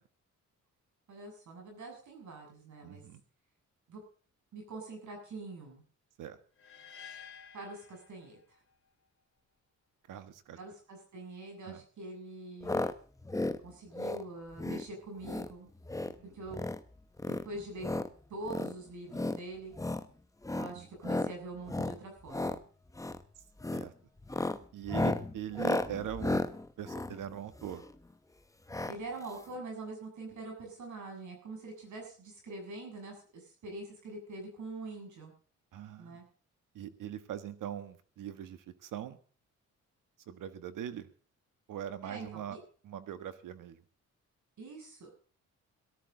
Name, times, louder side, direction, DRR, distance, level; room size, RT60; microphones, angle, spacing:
voice 1, 1.1-3.0 3.9-4.0 4.5-5.8 7.5-8.4 10.6-12.9 13.6-15.7 16.3-16.6 17.3-17.9 18.3-19.7 20.5-22.6 28.9-35.3 36.0-36.2 42.0-42.6 44.6-45.2, right 2 dB, 65° right, 2 dB, 7.5 m, -44 dB
voice 2, 2.8-3.2 6.2-6.4 10.1-10.6 11.6-11.8 16.0-16.3 20.7-20.9 23.7-23.9 24.7-26.4 26.8-27.8 35.7-36.2 36.7-39.2 40.3-41.1 41.7-42.6 42.8-43.8, right 9 dB, 85° right, 11 dB, 1.5 m, -41 dB
sound 1, 6.6-8.7, left 7 dB, 40° left, 3.0 m, -51 dB
sound 2, 12.6-12.9 13.2-13.6 13.9-14.2 14.6-14.9 15.2-15.5 15.8-16.2 16.5-16.8 17.2-18.1 18.5-18.7 19.1-19.4 19.7-20.1 20.4-20.7 21.0-21.3 21.7-22.0 22.3-22.6 22.9-23.2 23.6-23.9 24.2-27.9 28.7-29.0 29.2-29.3 29.5-29.6, left 2 dB, 10° left, 0.9 m, -34 dB
18.5 x 13.0 x 3.9 m, 0.41 s
cardioid pair, 100°, 31 cm